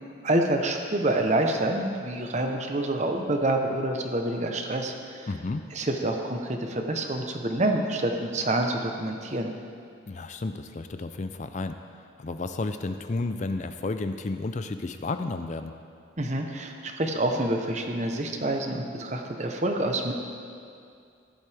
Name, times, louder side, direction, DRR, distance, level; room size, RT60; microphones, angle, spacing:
voice 1, 0.2-5.3 5.7-9.5 16.2-20.1, right 1 dB, 35° right, 3 dB, 0.9 m, -27 dB
voice 2, 5.3-5.6 10.1-15.7, left 3 dB, 40° left, 8 dB, 0.4 m, -32 dB
15.5 x 11.5 x 3.5 m, 2.4 s
head